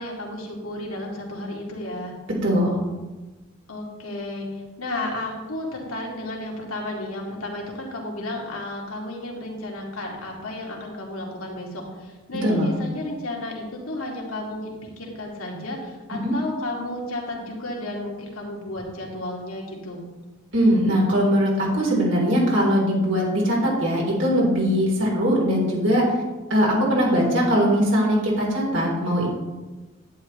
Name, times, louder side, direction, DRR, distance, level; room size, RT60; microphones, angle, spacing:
voice 1, 0.0-2.1 3.7-14.7 15.0-20.0, left 1 dB, 85° left, -1 dB, 2.4 m, -32 dB
voice 2, 2.4-2.8 12.4-12.7 16.2-16.3 20.5-26.2 26.5-29.3, equal, 60° right, -4 dB, 3.6 m, -21 dB
11.0 x 10.0 x 3.3 m, 1.2 s
head